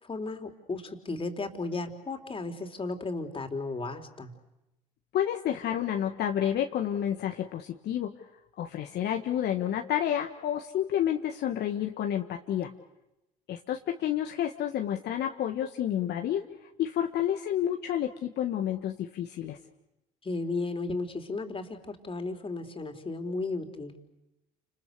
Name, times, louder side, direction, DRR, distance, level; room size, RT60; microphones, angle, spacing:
voice 1, 0.0-4.3 20.2-24.0, left 3 dB, 30° left, 6 dB, 3.8 m, -34 dB
voice 2, 5.1-8.1 8.6-12.7 13.5-19.6, left 10 dB, 60° left, 3 dB, 1.6 m, -30 dB
29.5 x 27.5 x 6.9 m, 0.93 s
hypercardioid pair, 65°, 19 cm